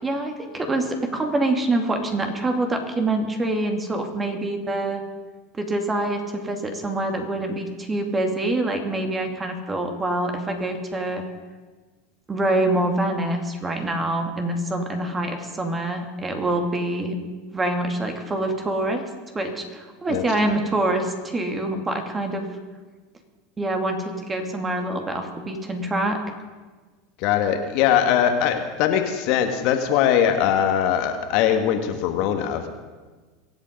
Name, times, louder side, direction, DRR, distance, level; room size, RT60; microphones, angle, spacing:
voice 1, 0.0-5.0 5.5-11.2 12.3-17.2 17.5-19.0 19.3-22.5 23.6-26.2, right 2 dB, 20° right, 5 dB, 2.5 m, -25 dB
voice 2, 27.2-32.7, left 9 dB, 60° left, 6 dB, 1.6 m, -21 dB
23.5 x 8.1 x 5.3 m, 1.4 s
hypercardioid pair, 90°, 0 cm